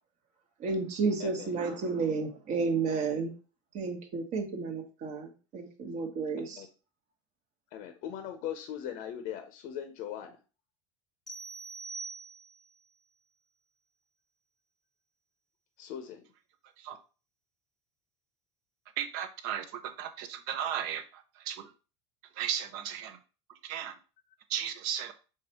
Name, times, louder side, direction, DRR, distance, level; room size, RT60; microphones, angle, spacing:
voice 1, 0.6-3.3 3.7-6.7, right 4 dB, 50° right, 1.1 m, -32 dB
voice 2, 7.7-10.4 15.8-16.2, left 10 dB, 55° left, 0.6 m, -39 dB
sound 1, 11.3-12.8, right 4 dB, ahead, 0.8 m, -43 dB
voice 3, 19.0-21.7 22.4-23.2 23.6-23.9 24.5-25.1, right 9 dB, 65° right, 0.7 m, -35 dB
4.7 x 3.4 x 2.8 m
supercardioid pair, 120°, 16 cm